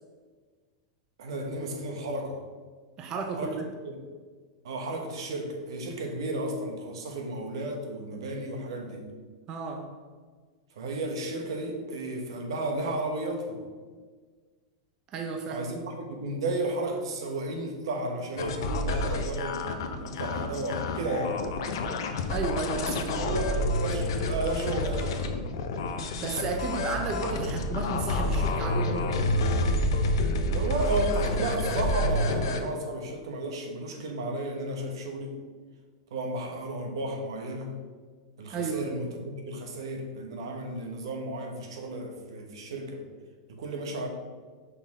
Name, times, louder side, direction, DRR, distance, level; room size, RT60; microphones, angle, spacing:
voice 1, 1.2-2.4 3.3-4.0 4.6-9.1 10.7-13.6 15.5-21.4 23.1-25.2 27.4-27.6 30.5-35.4 36.1-37.7 38.4-43.0 43.5-44.1, right 2 dB, 75° right, 2 dB, 1.2 m, -33 dB
voice 2, 3.0-3.6 9.5-9.9 15.1-15.6 22.3-23.3 26.2-29.3 38.5-38.9, right 4 dB, 25° right, 3 dB, 0.4 m, -33 dB
sound 1, 18.4-32.6, left 1 dB, 65° left, 0.7 m, -29 dB
5.5 x 4.1 x 4.1 m, 1.5 s
supercardioid pair, 170°, 3 cm